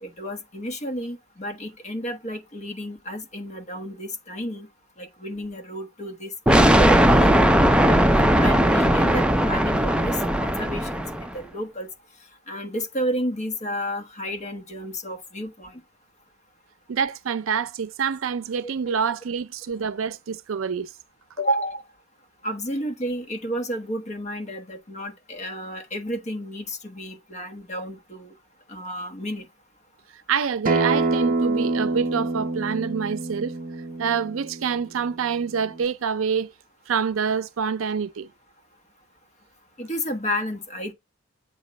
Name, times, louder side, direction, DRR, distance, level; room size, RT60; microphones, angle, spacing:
voice 1, 0.0-4.7 5.0-8.0 8.4-11.9 12.5-15.8 18.6-18.7 21.4-21.8 22.4-28.3 28.7-29.5 39.8-40.9, equal, 35° left, 1.1 m, -31 dB
sound 1, 6.5-11.3, equal, 5° right, 0.4 m, -18 dB
voice 2, 16.9-20.9 30.3-33.5 34.0-36.5 36.9-38.3, right 6 dB, 80° right, 0.5 m, -26 dB
Acoustic guitar, 30.7-35.9, right 3 dB, 45° right, 0.7 m, -26 dB
8.0 x 3.0 x 5.1 m
head